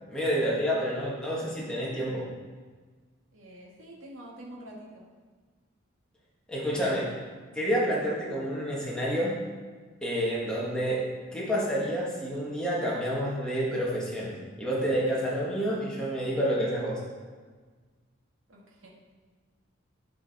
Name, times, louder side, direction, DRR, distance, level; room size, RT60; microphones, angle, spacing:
voice 1, 0.1-2.3 6.5-7.1 7.5-9.4 10.0-17.0, equal, 5° left, -6 dB, 1.7 m, -29 dB
voice 2, 3.3-5.1 18.5-18.9, right 1 dB, 85° right, -3 dB, 2.0 m, -46 dB
11.5 x 4.9 x 4.2 m, 1.4 s
head